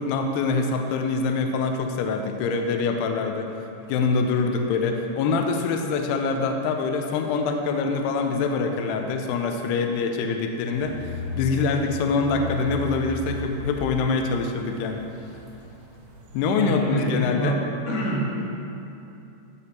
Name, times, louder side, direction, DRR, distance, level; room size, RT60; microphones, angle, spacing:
voice 1, 0.0-3.5 3.9-15.1 16.3-17.6, left 4 dB, 80° left, 4 dB, 2.4 m, -25 dB
sound 1, 10.7-16.8, left 2 dB, 75° right, 3.0 m, -36 dB
voice 2, 16.5-17.6 17.9-18.4, right 1 dB, 55° left, -6 dB, 1.7 m, -26 dB
15.0 x 5.2 x 4.3 m, 2.8 s
omnidirectional pair, 5.4 m